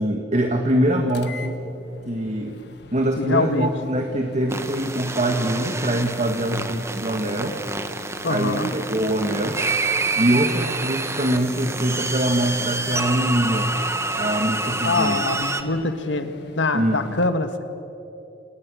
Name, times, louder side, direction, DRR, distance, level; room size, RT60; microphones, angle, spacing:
voice 1, 0.0-1.7 2.1-2.5 2.9-7.6 8.3-9.6 10.2-13.7 14.2-15.3 16.7-17.2, right 1 dB, 40° right, 4 dB, 1.8 m, -23 dB
sound 1, 1.1-17.3, left 3 dB, 65° left, 1.7 m, -44 dB
voice 2, 3.2-3.8 8.2-8.7 14.8-17.6, left 3 dB, 85° left, 8 dB, 1.9 m, -24 dB
sound 2, 4.5-15.6, right 3 dB, 15° right, 1.3 m, -27 dB
29.5 x 27.5 x 6.4 m, 2.9 s
head